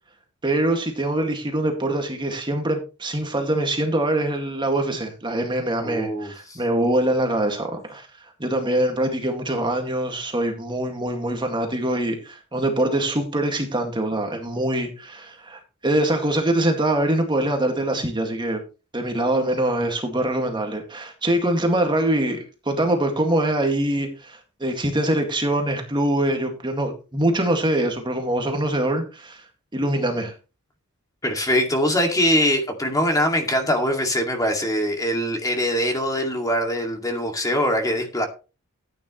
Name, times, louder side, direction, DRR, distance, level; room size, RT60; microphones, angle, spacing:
voice 1, 0.4-8.1 8.4-18.6 18.9-29.4 29.7-30.3, right 1 dB, 20° right, 2.0 m, -24 dB
voice 2, 5.8-6.6 31.2-38.3, equal, 15° left, 2.3 m, -23 dB
14.0 x 9.4 x 3.1 m
head